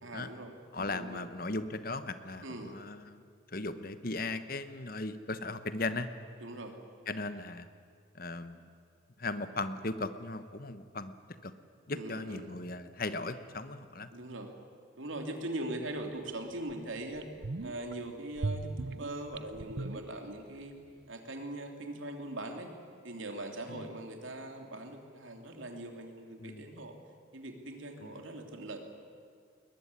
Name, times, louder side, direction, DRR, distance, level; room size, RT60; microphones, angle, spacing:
voice 1, 0.0-1.2 2.4-2.8 6.4-6.8 11.9-12.5 14.1-14.6 15.0-17.3 17.6-20.7 21.1-22.7 23.0-26.9 27.3-28.8, right 1 dB, 85° right, 4 dB, 3.1 m, -41 dB
voice 2, 0.7-3.2 3.5-6.1 7.1-7.7 8.1-8.7 9.2-11.1 11.4-11.5 11.9-14.1 23.7-23.9 26.4-26.8 28.0-28.2, left 2 dB, 45° left, 11 dB, 1.1 m, -37 dB
sound 1, 16.1-16.2 16.7-16.8 17.1-17.9 18.4-20.6 20.9-21.0, right 3 dB, 60° right, 0.7 m, -38 dB
21.0 x 21.0 x 9.8 m, 2.1 s
head